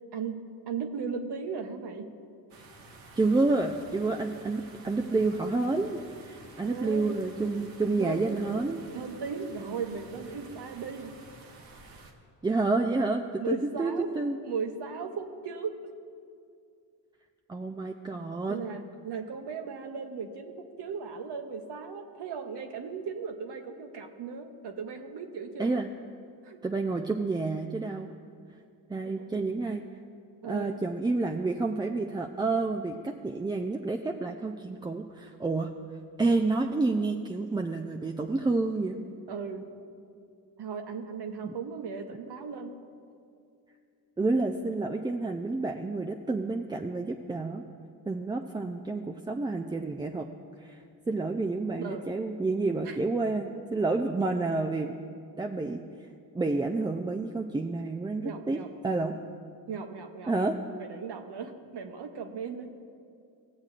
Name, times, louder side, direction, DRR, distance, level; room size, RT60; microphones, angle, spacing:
voice 1, 0.1-2.1 6.6-7.1 8.0-8.2 8.9-11.2 13.4-14.1 14.4-15.8 18.5-25.8 26.4-26.6 29.0-29.3 30.4-30.7 39.3-39.7 40.6-42.7 51.8-52.2 52.8-53.0 58.2-58.7 59.7-60.3 60.8-62.8, right 5 dB, 60° right, 4 dB, 1.0 m, -37 dB
sound 1, 2.5-12.1, right 3 dB, 80° right, 1.1 m, -51 dB
voice 2, 3.2-8.8 12.4-14.4 17.5-18.6 25.6-25.9 26.6-28.1 28.9-29.8 30.4-35.7 36.2-39.0 41.4-41.5 44.2-47.6 48.1-50.3 50.6-54.9 55.4-56.1 56.3-59.1 60.3-60.6, right 3 dB, 10° right, 2 dB, 0.3 m, -29 dB
19.0 x 7.4 x 2.4 m, 2.4 s
supercardioid pair, 50°, 46 cm